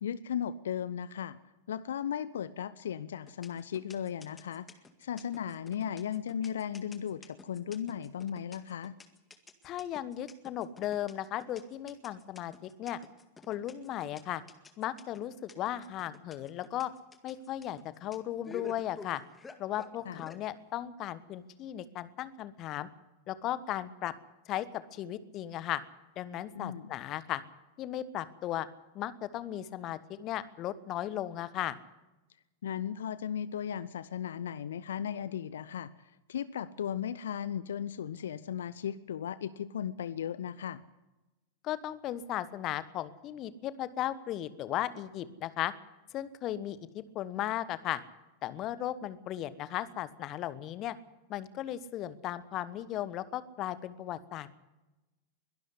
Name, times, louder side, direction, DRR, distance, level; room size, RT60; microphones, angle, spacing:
voice 1, 0.0-1.4 1.7-4.7 5.0-9.0 20.1-20.2 26.5-26.9 32.6-35.9 36.3-40.8, left 9 dB, 65° left, 16 dB, 0.7 m, -36 dB
sound 1, 3.3-20.4, left 3 dB, 15° left, 1.9 m, -50 dB
voice 2, 9.6-13.0 13.5-14.4 14.8-16.9 17.2-19.2 19.6-22.9 23.3-24.1 24.5-25.8 26.2-27.4 27.8-28.7 28.9-31.8 41.6-45.7 46.1-48.0 48.4-50.9 51.3-54.5, left 12 dB, 35° left, 15 dB, 1.3 m, -36 dB
22.5 x 12.0 x 9.7 m, 1.0 s
figure-of-eight pair, 90°, 0 cm